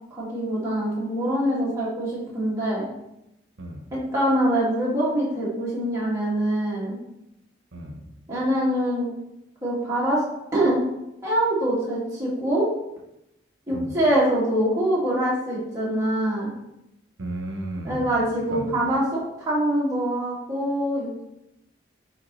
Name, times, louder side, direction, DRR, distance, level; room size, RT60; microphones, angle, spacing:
voice 1, 0.1-2.9 3.9-7.0 8.3-9.1 9.6-10.2 10.5-10.8 11.2-12.7 13.7-16.5 17.8-21.2, right 1 dB, 15° right, -7 dB, 2.0 m, -24 dB
voice 2, 3.6-3.9 7.7-8.0 13.7-13.9 17.2-18.1 18.5-18.8, right 1 dB, 80° right, 2 dB, 1.0 m, -34 dB
10.5 x 3.6 x 3.1 m, 0.87 s
head